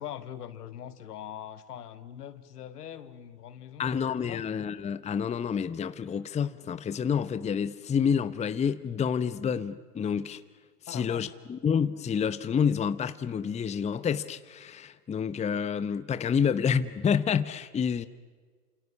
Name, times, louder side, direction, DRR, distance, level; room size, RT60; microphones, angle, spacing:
voice 1, 0.0-4.4 10.9-11.4, left 10 dB, 75° left, 1.9 m, -42 dB
voice 2, 3.8-10.4 10.9-18.1, left 7 dB, 15° left, 0.8 m, -28 dB
29.0 x 27.5 x 7.3 m
hypercardioid pair, 95°, 47 cm